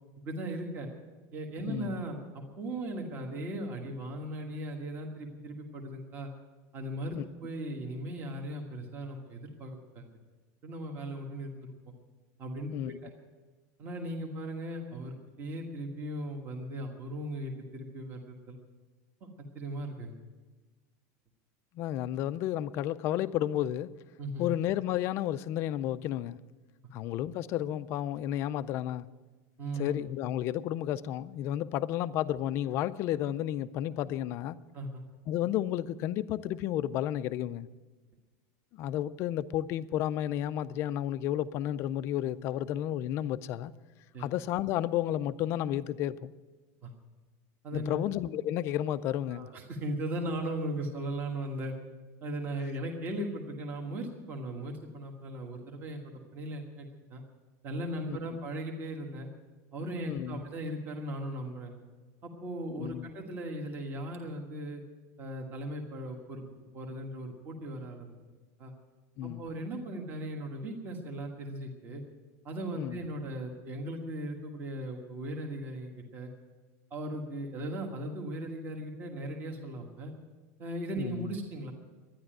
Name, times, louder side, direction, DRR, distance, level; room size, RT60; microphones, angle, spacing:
voice 1, 0.2-0.9 1.3-6.3 6.7-10.1 10.6-11.7 12.4-13.1 13.8-18.6 19.2-19.3 19.5-20.1 24.2-24.5 29.6-30.0 34.7-35.0 44.1-44.3 46.8-46.9 47.6-48.0 49.3-51.8 52.2-57.2 57.6-59.3 59.7-61.7 62.2-64.8 65.2-66.4 66.7-68.1 68.6-68.7 69.2-72.0 72.4-76.3 76.9-80.1 80.6-81.7, right 1 dB, 25° right, 1.4 m, -38 dB
voice 2, 1.7-2.0 7.2-7.3 12.7-12.9 21.7-23.9 24.4-26.4 26.9-29.1 29.8-34.6 35.3-37.7 38.7-43.7 44.2-46.3 47.7-49.5 58.1-58.2 60.1-60.4 62.8-63.1 69.2-69.4 72.7-73.0 81.0-81.3, left 12 dB, 30° left, 0.4 m, -32 dB
12.0 x 10.0 x 8.9 m
supercardioid pair, 180°, 9 cm